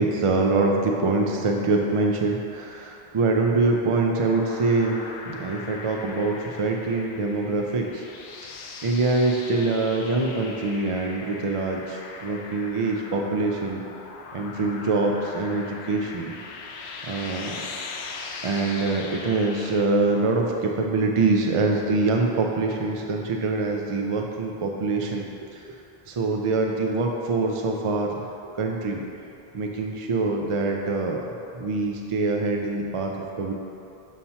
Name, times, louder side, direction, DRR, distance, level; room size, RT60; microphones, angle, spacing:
voice 1, 0.0-8.0 8.4-8.6 8.8-13.8 14.3-16.3 17.0-17.6 18.4-25.6 26.1-28.2 28.4-29.0 29.5-31.2 31.5-33.1 33.4-33.5, right 3 dB, 55° right, 1 dB, 0.3 m, -24 dB
sound 1, 4.2-19.9, left 4 dB, 85° left, 0.8 m, -40 dB
7.3 x 2.8 x 5.5 m, 2.7 s
omnidirectional pair, 1.0 m